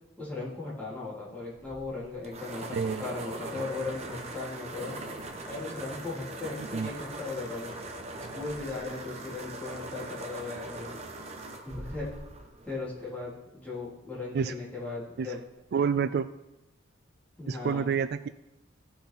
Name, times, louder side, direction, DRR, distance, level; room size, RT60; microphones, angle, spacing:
voice 1, 0.2-5.0 5.5-7.7 8.3-11.0 11.6-12.1 12.6-15.4 17.4-17.9, left 3 dB, 10° left, -8 dB, 3.5 m, -37 dB
sound 1, 1.5-13.4, right 2 dB, 35° right, 1.1 m, -41 dB
voice 2, 2.6-3.1 3.4-3.7 6.7-6.9 14.3-14.5 15.2-15.3 15.7-16.3 17.5-18.3, right 6 dB, 55° right, 13 dB, 0.3 m, -29 dB
16.5 x 5.8 x 4.4 m, 0.96 s
head